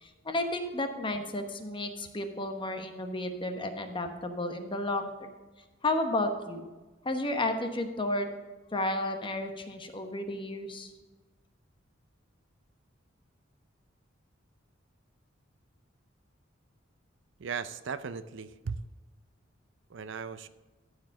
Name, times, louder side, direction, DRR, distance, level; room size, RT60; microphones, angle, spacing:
voice 1, 0.0-5.3 5.8-6.6 7.0-8.3 8.7-10.9, left 1 dB, 25° left, 6 dB, 1.0 m, -32 dB
voice 2, 17.4-18.9 19.9-20.5, right 5 dB, 65° right, 13 dB, 0.5 m, -37 dB
13.0 x 5.1 x 5.9 m, 1.2 s
head